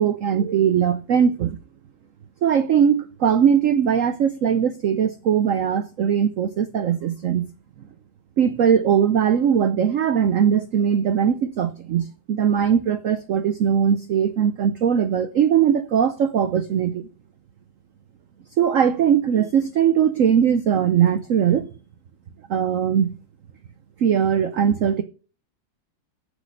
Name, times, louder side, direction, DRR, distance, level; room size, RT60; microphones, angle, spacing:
voice 1, 0.0-1.6 2.4-7.5 8.4-17.1 18.6-21.7 22.5-23.1 24.0-25.0, right 8 dB, 85° right, 0.7 m, -20 dB
8.2 x 6.7 x 6.3 m
omnidirectional pair, 2.1 m